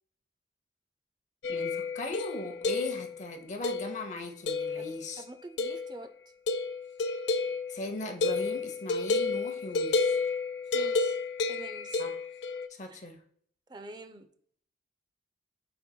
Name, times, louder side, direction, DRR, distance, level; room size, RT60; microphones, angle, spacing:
sound 1, 1.4-3.2 3.6-4.1 4.5-5.1 5.6-6.0 6.5-12.7, left 3 dB, 65° left, 0.4 m, -31 dB
voice 1, 1.5-5.3 7.7-10.0 12.0-12.2 12.7-13.2, left 2 dB, 40° left, 6 dB, 0.7 m, -38 dB
voice 2, 5.2-6.1 10.7-11.2 11.5-12.0 12.9-13.0 13.7-14.3, right 2 dB, 20° right, 8 dB, 0.4 m, -45 dB
10.5 x 5.3 x 2.2 m, 0.63 s
head